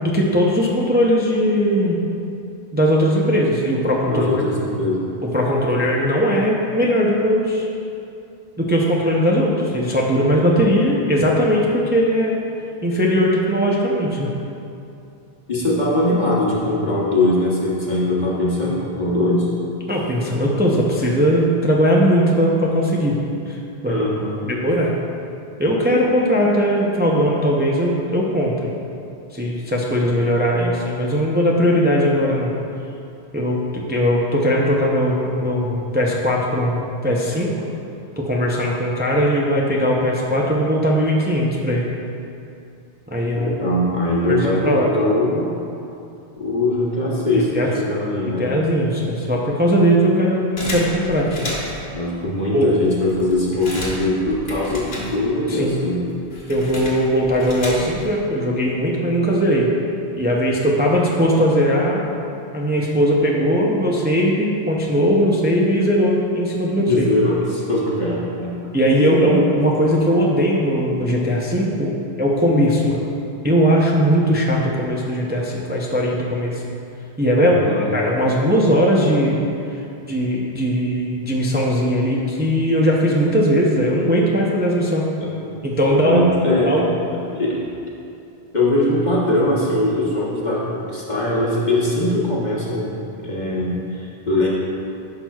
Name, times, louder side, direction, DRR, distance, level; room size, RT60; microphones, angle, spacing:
voice 1, 0.0-2.0 2.7-4.3 5.3-7.7 8.6-12.4 12.8-14.3 19.9-23.2 23.5-23.6 23.8-24.0 24.4-24.9 25.6-28.7 29.3-32.5 33.3-37.6 38.2-41.8 43.1-43.5 44.3-44.9 47.3-47.7 48.4-51.5 52.5-52.7 55.5-55.8 56.5-59.7 60.2-62.0 62.5-66.9 68.7-73.0 73.4-76.6 77.2-79.4 79.7-79.8 80.1-85.1 85.6-86.2 86.7-87.0, equal, 15° right, -3 dB, 0.5 m, -19 dB
voice 2, 4.1-5.1 15.5-19.5 23.9-24.5 30.5-30.7 43.4-45.5 46.4-48.5 51.9-56.0 66.9-68.5 69.2-69.3 77.4-77.9 85.2-85.4 85.9-86.7 87.1-87.6 88.5-92.9 93.2-94.5, left 1 dB, 50° left, -5 dB, 1.2 m, -21 dB
sound 1, 50.6-51.9 52.5-52.6 52.9-55.5 55.8-58.2, left 1 dB, 75° left, 1.5 m, -32 dB
10.5 x 6.0 x 2.3 m, 2.7 s
omnidirectional pair, 1.0 m